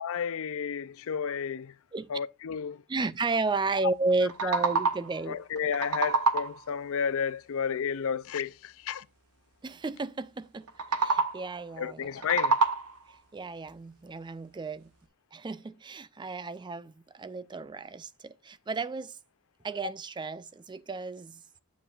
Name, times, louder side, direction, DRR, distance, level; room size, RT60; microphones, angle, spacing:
voice 1, 0.0-1.7 2.1-2.8 4.4-4.5 5.3-9.0 11.8-12.6, left 7 dB, 65° left, 0.5 m, -32 dB
voice 2, 2.9-5.4 9.6-10.7 11.0-12.2 13.1-14.9 15.3-19.2 19.6-21.4, right 3 dB, 20° right, 0.4 m, -33 dB
sound 1, 4.1-5.2 5.6-6.7 10.7-11.6 12.0-13.1, right 4 dB, 85° right, 1.0 m, -27 dB
9.8 x 7.2 x 2.4 m
head